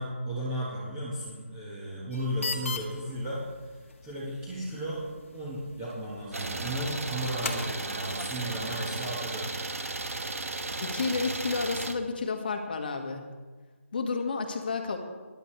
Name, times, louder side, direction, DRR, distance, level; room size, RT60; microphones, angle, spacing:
voice 1, 0.0-3.4 4.0-5.0 5.3-9.6, right 1 dB, 10° right, -8 dB, 1.7 m, -34 dB
sound 1, 2.1-8.0, left 4 dB, 65° left, 1.8 m, -40 dB
Idling, 6.3-11.9, right 2 dB, 80° right, 1.4 m, -35 dB
voice 2, 10.8-13.3 13.9-15.0, left 4 dB, 40° left, 4 dB, 1.8 m, -31 dB
21.0 x 11.0 x 3.4 m, 1.4 s
figure-of-eight pair, 170°, 8 cm